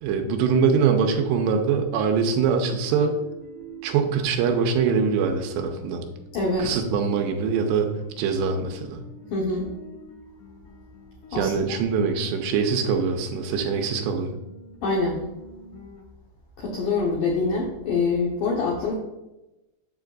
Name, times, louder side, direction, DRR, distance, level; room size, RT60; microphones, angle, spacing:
voice 1, 0.0-3.1 3.8-6.0 6.6-7.9 8.2-9.0 11.3-14.3, right 6 dB, 85° right, 4 dB, 2.7 m, -23 dB
sound 1, 2.2-16.0, right 1 dB, 65° left, 2.4 m, -46 dB
voice 2, 6.3-6.8 9.3-9.7 11.3-11.5 14.8-15.2 16.6-18.9, left 3 dB, 90° left, -3 dB, 1.7 m, -25 dB
7.7 x 7.4 x 2.4 m, 0.97 s
omnidirectional pair, 5.3 m